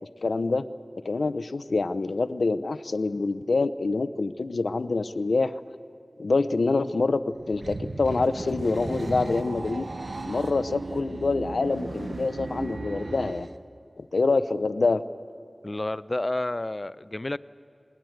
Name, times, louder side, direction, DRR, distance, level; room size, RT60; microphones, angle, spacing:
voice 1, 0.0-0.6 1.0-5.5 6.2-9.9 10.2-13.5 14.0-15.0, left 3 dB, 85° left, 14 dB, 0.6 m, -26 dB
sound 1, 7.3-13.6, right 2 dB, 60° right, 0.8 m, -36 dB
voice 2, 15.6-17.4, left 2 dB, 35° left, 16 dB, 0.4 m, -30 dB
19.5 x 19.5 x 7.9 m, 2.6 s
wide cardioid pair, 70°, 0 cm